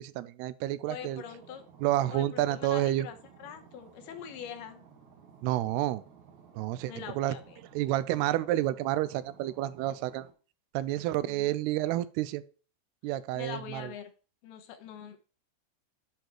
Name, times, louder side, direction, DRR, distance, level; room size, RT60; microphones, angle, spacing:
voice 1, 0.0-1.2 1.8-3.1 5.4-6.0 6.6-7.4 7.7-10.3 10.7-12.4 13.0-13.9, right 14 dB, 85° right, 2.6 m, -30 dB
voice 2, 0.9-1.6 2.1-3.1 3.4-4.9 6.9-7.4 11.2-11.5 13.3-14.1 14.4-15.2, left 8 dB, 80° left, 2.9 m, -43 dB
sound 1, 1.0-10.3, right 6 dB, 60° right, 2.2 m, -56 dB
10.5 x 4.9 x 4.6 m
omnidirectional pair, 4.6 m